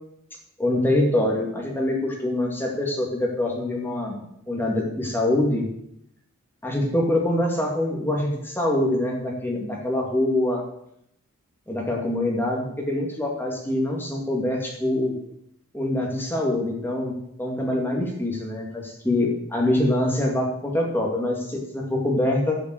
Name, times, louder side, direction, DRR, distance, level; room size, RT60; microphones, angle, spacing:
voice 1, 0.6-4.2 4.5-5.7 6.6-10.6 11.7-15.1 15.7-17.1 17.4-22.6, left 1 dB, 10° left, -1 dB, 2.3 m, -24 dB
12.0 x 5.8 x 7.9 m, 0.77 s
head